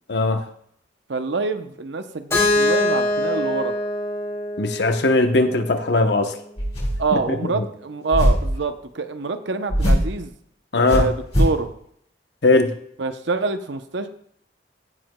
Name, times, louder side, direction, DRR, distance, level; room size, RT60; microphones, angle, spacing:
voice 1, 0.1-0.4 4.6-6.4 7.1-7.6 10.7-11.1 12.4-12.7, left 2 dB, 65° left, 7 dB, 0.9 m, -19 dB
voice 2, 1.1-3.8 7.0-10.3 10.9-11.7 13.0-14.1, right 3 dB, 75° right, 9 dB, 0.7 m, -26 dB
Keyboard (musical), 2.3-6.2, left 2 dB, 15° left, 2.5 m, -24 dB
sound 1, 6.6-7.2 8.1-8.6 9.7-10.2 10.9-11.6, equal, 35° left, 4.3 m, -20 dB
16.0 x 7.8 x 2.2 m, 0.68 s
head